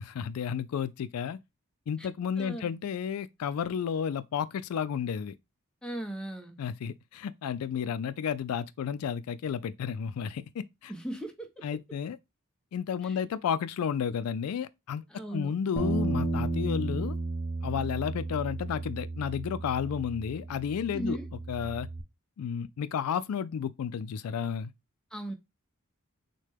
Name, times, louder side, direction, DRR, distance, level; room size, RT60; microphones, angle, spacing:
voice 1, 0.2-1.4 1.9-5.3 6.6-10.9 11.6-12.2 12.7-15.1 15.3-17.2 17.6-21.2 21.5-21.9 22.4-24.7, left 7 dB, 85° left, 0.3 m, -32 dB
voice 2, 2.4-2.7 5.8-6.6 10.9-11.8 13.0-13.2 15.1-15.5 20.9-21.3 25.1-25.3, right 1 dB, 5° left, 0.7 m, -37 dB
Bass guitar, 15.8-22.0, right 2 dB, 20° left, 1.0 m, -33 dB
6.4 x 2.2 x 3.4 m
head